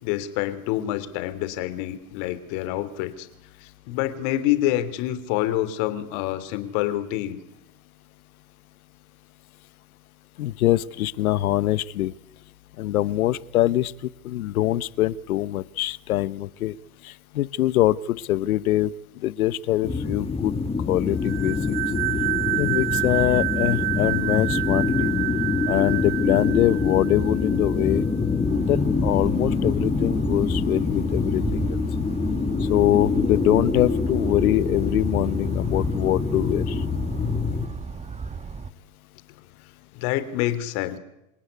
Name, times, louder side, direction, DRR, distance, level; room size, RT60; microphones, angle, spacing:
voice 1, 0.0-3.3 3.6-7.4 39.9-41.0, left 14 dB, 60° left, 13 dB, 3.3 m, -27 dB
voice 2, 10.4-12.1 12.8-16.7 17.0-18.9 19.2-20.5 20.9-21.8 22.5-25.1 25.7-28.0 28.7-31.8 32.7-36.8, left 14 dB, 85° left, 18 dB, 1.0 m, -24 dB
sound 1, 19.8-37.7, left 4 dB, 15° left, 2.5 m, -25 dB
sound 2, 21.2-27.7, right 25 dB, 75° right, 2.0 m, -29 dB
sound 3, 28.4-38.7, right 5 dB, 15° right, 1.2 m, -35 dB
28.0 x 17.5 x 9.6 m, 0.86 s
hypercardioid pair, 110°, 42 cm